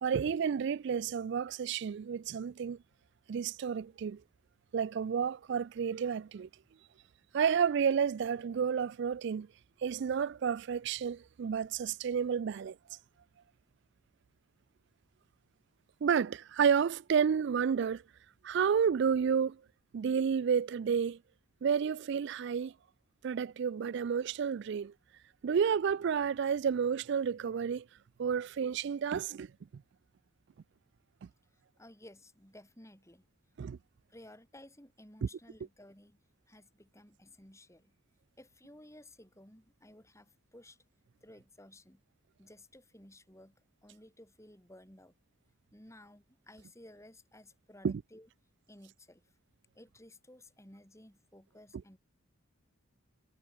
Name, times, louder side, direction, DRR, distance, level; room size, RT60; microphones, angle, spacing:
voice 1, 0.0-2.8 3.3-4.2 4.7-6.5 7.3-9.5 9.8-12.8 16.0-18.0 18.4-19.6 19.9-21.2 21.6-22.7 23.2-24.9 25.4-27.9 28.2-29.5 33.6-33.8 35.2-35.3 47.8-48.0, right 7 dB, 55° right, 0.3 m, -30 dB
voice 2, 31.5-33.3 34.1-36.2 36.5-37.9 38.4-40.8 41.2-42.0 42.4-43.5 43.8-45.1 45.7-48.3 48.7-49.2 49.8-52.0, left 1 dB, 15° left, 5.3 m, -56 dB
head